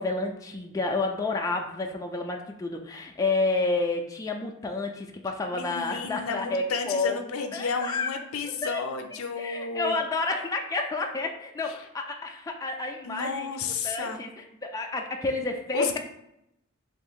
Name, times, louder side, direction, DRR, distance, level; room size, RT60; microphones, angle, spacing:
voice 1, 0.0-8.1 8.6-8.8 9.4-16.0, left 3 dB, 15° left, 2 dB, 0.3 m, -30 dB
voice 2, 5.5-10.0 13.0-14.2 15.7-16.0, left 5 dB, 75° left, 6 dB, 0.5 m, -32 dB
3.5 x 2.5 x 3.6 m, 0.80 s
head